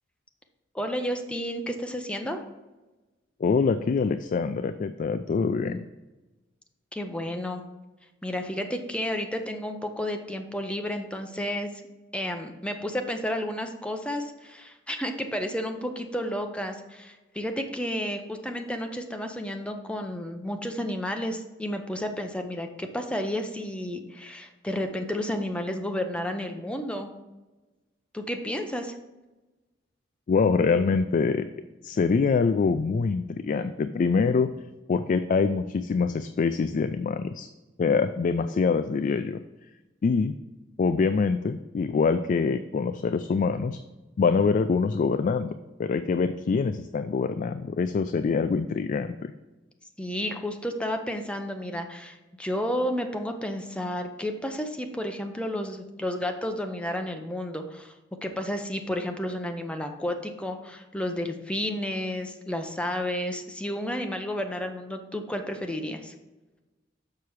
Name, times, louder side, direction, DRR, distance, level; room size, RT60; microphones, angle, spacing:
voice 1, 0.7-2.4 6.9-7.6 8.2-11.7 12.1-27.1 28.1-28.9 50.0-57.9 58.2-66.1, left 1 dB, 5° left, 5 dB, 0.7 m, -31 dB
voice 2, 3.4-5.9 30.3-31.5 31.8-34.5 34.9-37.5 37.8-39.4 40.0-40.4 40.8-43.8 44.2-45.5 45.8-49.3, left 5 dB, 45° left, 10 dB, 0.3 m, -25 dB
6.7 x 5.7 x 4.7 m, 1.1 s
head